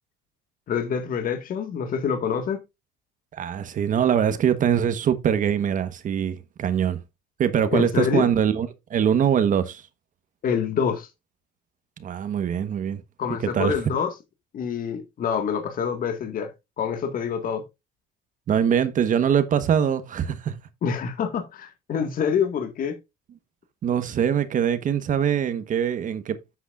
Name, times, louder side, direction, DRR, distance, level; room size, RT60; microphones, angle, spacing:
voice 1, 0.7-2.6 7.7-8.3 10.4-11.1 13.2-14.1 14.5-16.5 16.8-17.6 20.8-23.0, left 7 dB, 55° left, 1.8 m, -26 dB
voice 2, 3.3-7.0 7.4-9.8 12.0-13.0 13.5-13.8 18.5-20.5 23.8-26.4, right 8 dB, 50° right, 1.2 m, -23 dB
10.0 x 8.2 x 2.5 m
cardioid pair, 110°, 17 cm